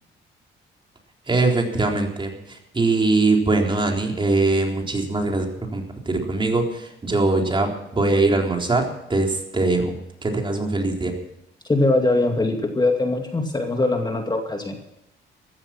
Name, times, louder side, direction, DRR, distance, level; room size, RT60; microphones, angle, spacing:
voice 1, 1.3-5.5 5.7-9.9 10.2-11.1, right 3 dB, 25° right, 2 dB, 3.9 m, -22 dB
voice 2, 11.7-14.8, left 2 dB, 20° left, 4 dB, 2.3 m, -21 dB
15.0 x 13.5 x 6.0 m, 0.86 s
cardioid pair, 90°, 20 cm